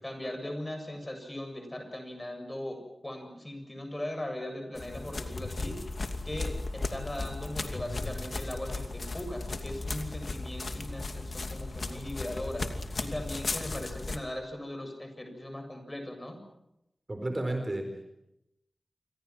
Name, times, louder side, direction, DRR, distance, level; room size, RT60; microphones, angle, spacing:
voice 1, 0.0-6.0 6.2-16.4, left 1 dB, 20° left, 6 dB, 7.4 m, -39 dB
sound 1, 4.8-14.2, left 3 dB, 60° left, 2.7 m, -36 dB
voice 2, 17.1-18.1, right 1 dB, 30° right, 6 dB, 4.3 m, -32 dB
28.0 x 25.5 x 6.1 m, 0.84 s
wide cardioid pair, 70°, 0 cm